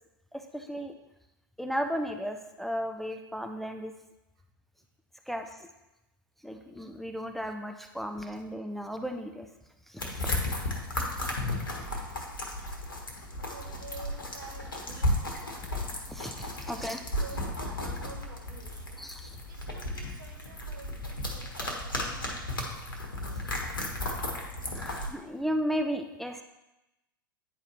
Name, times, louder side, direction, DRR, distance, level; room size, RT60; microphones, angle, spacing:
voice 1, 0.3-0.9 1.6-3.9 5.3-5.7 6.4-9.5 9.9-10.3 16.1-17.0 19.0-19.4 21.6-21.7 24.7-26.4, equal, ahead, 5 dB, 0.4 m, -35 dB
sound 1, 10.0-25.1, left 1 dB, 70° left, 1.4 m, -34 dB
voice 2, 11.7-12.3 12.7-12.8 13.0-13.2 13.5-15.9 16.7-19.1 19.4-22.4 24.6-24.8, right 4 dB, 65° right, 1 dB, 1.4 m, -50 dB
9.6 x 4.5 x 3.3 m, 0.95 s
figure-of-eight pair, 90°, 12 cm